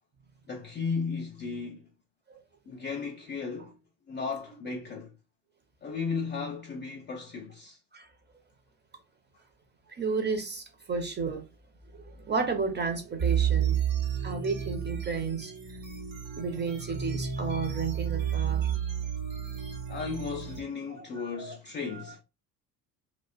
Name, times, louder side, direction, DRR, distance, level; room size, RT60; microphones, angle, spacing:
voice 1, 0.5-1.8 2.7-3.8 4.1-5.1 5.8-7.8 19.9-22.2, left 5 dB, 25° left, 0.3 m, -35 dB
voice 2, 9.9-11.4 11.9-13.8 14.2-15.5 16.4-18.7 20.9-21.6 21.9-22.2, right 4 dB, 20° right, 0.7 m, -32 dB
sound 1, 13.2-20.6, right 9 dB, 65° right, 1.0 m, -31 dB
2.4 x 2.1 x 2.4 m
hypercardioid pair, 55°, 49 cm